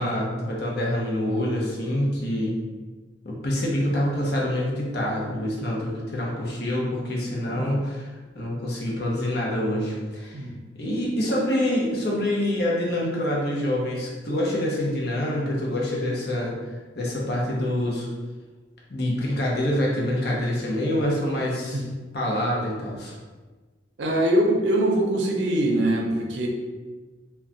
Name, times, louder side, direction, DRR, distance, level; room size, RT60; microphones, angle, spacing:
voice 1, 0.0-2.5 3.2-8.1 8.3-10.4 10.7-16.5 16.9-18.1 18.9-21.8 22.1-23.1, left 1 dB, 60° left, -3 dB, 0.7 m, -26 dB
voice 2, 24.0-26.5, right 1 dB, 85° right, 0 dB, 0.5 m, -23 dB
2.2 x 2.2 x 3.7 m, 1.3 s
head